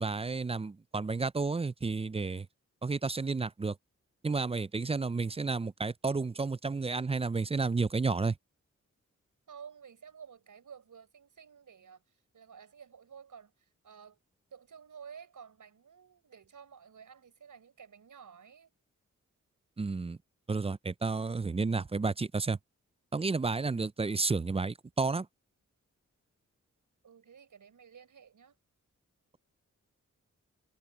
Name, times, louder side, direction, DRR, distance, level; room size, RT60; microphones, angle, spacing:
voice 1, 0.0-2.5 2.8-3.8 4.2-8.3 19.8-20.2 20.5-22.6 23.1-25.3, right 4 dB, 20° right, 0.4 m, -31 dB
voice 2, 9.5-14.2 14.5-18.7 27.0-28.6, right 7 dB, 80° right, 5.4 m, -52 dB
cardioid pair, 65°, 31 cm